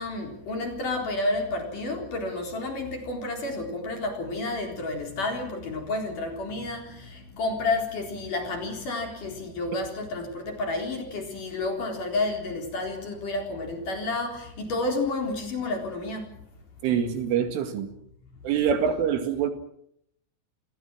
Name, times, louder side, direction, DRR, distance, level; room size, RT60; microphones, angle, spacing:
voice 1, 0.0-16.3, left 2 dB, 40° left, 5.0 m, -30 dB
voice 2, 16.8-17.9 18.4-19.5, right 8 dB, 75° right, 4.5 m, -25 dB
29.5 x 21.0 x 6.2 m
omnidirectional pair, 5.9 m